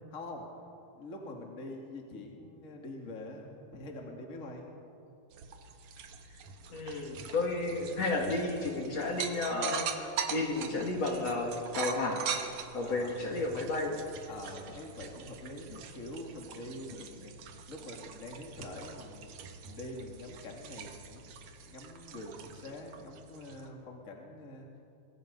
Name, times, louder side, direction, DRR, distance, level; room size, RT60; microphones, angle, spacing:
voice 1, 0.1-0.5 0.9-4.7 12.8-13.2 14.3-17.3 17.7-19.3 19.6-21.2 21.6-24.7, left 1 dB, 25° left, 1 dB, 2.3 m, -45 dB
sound 1, 5.3-23.7, right 7 dB, 60° right, 2.3 m, -43 dB
voice 2, 6.7-12.3 12.7-14.0, left 2 dB, 50° left, 0 dB, 3.1 m, -32 dB
26.5 x 23.0 x 5.4 m, 2.5 s
omnidirectional pair, 4.2 m